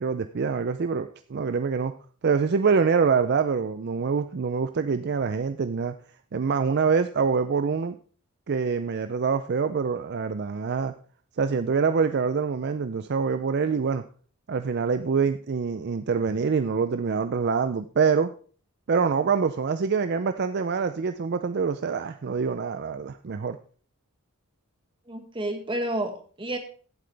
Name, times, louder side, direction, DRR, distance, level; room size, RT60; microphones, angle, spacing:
voice 1, 0.0-1.9 2.2-5.9 6.3-8.0 8.5-10.9 11.4-14.0 14.5-18.3 18.9-23.6, right 5 dB, 50° right, 10 dB, 0.4 m, -25 dB
voice 2, 25.1-26.6, right 1 dB, 25° right, 5 dB, 1.6 m, -30 dB
16.0 x 7.8 x 3.4 m, 0.43 s
head